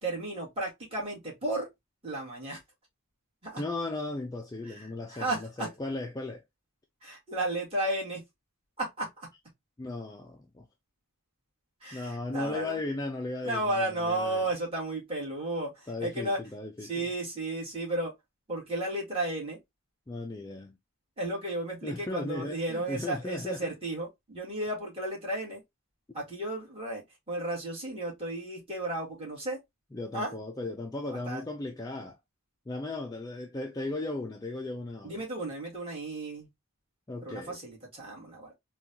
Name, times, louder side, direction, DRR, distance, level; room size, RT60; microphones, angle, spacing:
voice 1, 0.0-1.7 2.0-2.6 3.4-3.6 4.7-5.7 7.0-8.2 8.8-9.3 11.8-12.8 13.4-16.4 16.8-18.1 18.5-19.6 21.2-25.6 26.1-29.6 30.1-30.3 31.1-31.4 35.0-36.5 37.2-38.5, right 1 dB, 25° right, 1.7 m, -33 dB
voice 2, 3.6-6.4 9.8-10.7 11.9-14.4 15.9-17.1 20.1-20.8 21.8-23.7 29.9-32.2 32.7-35.2 37.1-37.6, left 2 dB, 15° left, 0.3 m, -36 dB
3.7 x 2.3 x 2.7 m
head